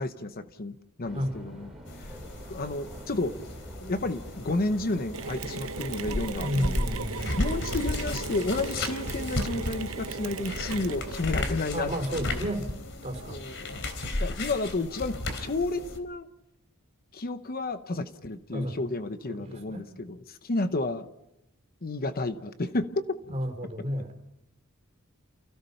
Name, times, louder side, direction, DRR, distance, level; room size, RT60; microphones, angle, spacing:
voice 1, 0.0-1.7 2.5-3.4 3.8-6.8 7.4-12.4 13.3-13.8 14.2-16.3 17.1-21.1 21.8-23.0, left 2 dB, 45° left, 10 dB, 0.9 m, -31 dB
sound 1, 1.0-11.1, equal, ahead, 4.8 m, -45 dB
sound 2, 1.9-16.0, left 1 dB, 60° left, 3.5 m, -35 dB
Mechanisms, 5.1-11.4, right 5 dB, 70° right, 0.9 m, -37 dB
voice 2, 6.4-7.4 11.7-12.7 13.0-13.5 18.5-18.7 19.4-19.8 23.3-24.1, equal, 30° right, 3 dB, 4.4 m, -31 dB
29.0 x 16.5 x 5.8 m, 0.84 s
head